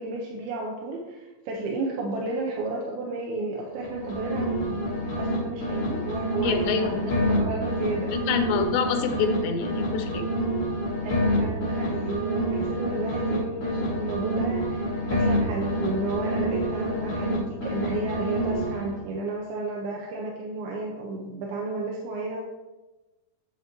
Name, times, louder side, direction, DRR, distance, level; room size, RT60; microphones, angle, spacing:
voice 1, 0.0-4.9 5.2-8.1 11.0-22.4, right 2 dB, 85° right, -2 dB, 2.8 m, -32 dB
sound 1, 3.7-5.4 5.6-9.4 9.6-13.4 13.6-17.4 17.6-19.0, equal, 35° left, 2.7 m, -28 dB
voice 2, 6.4-7.1 8.1-10.2, left 6 dB, 85° left, 7 dB, 2.7 m, -27 dB
8.3 x 7.7 x 3.1 m, 1.1 s
omnidirectional pair, 4.3 m